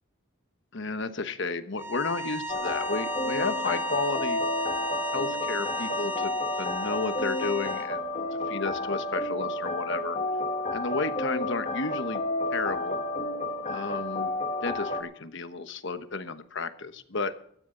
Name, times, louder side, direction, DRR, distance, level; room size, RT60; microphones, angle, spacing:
voice 1, 0.7-4.4 5.1-8.2 8.5-10.2 10.7-12.2 12.5-13.0 13.7-17.4, left 3 dB, 55° left, 10 dB, 1.1 m, -32 dB
sound 1, 1.8-7.9, right 1 dB, 10° right, 1.4 m, -35 dB
sound 2, 2.5-15.0, left 2 dB, 30° left, 1.4 m, -31 dB
16.0 x 14.0 x 3.9 m, 0.63 s
head